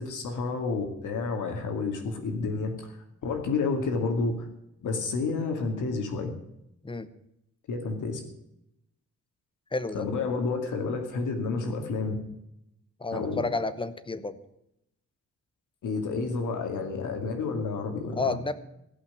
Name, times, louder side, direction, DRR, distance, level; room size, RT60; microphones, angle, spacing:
voice 1, 0.0-3.0 3.2-4.5 4.8-6.3 7.7-8.2 9.9-12.2 13.1-13.4 15.8-18.4, left 4 dB, 85° left, 4 dB, 2.4 m, -30 dB
voice 2, 9.7-10.1 13.0-14.4 18.1-18.5, left 3 dB, 15° left, 13 dB, 0.9 m, -30 dB
16.5 x 5.8 x 9.5 m, 0.81 s
wide cardioid pair, 135°, 30 cm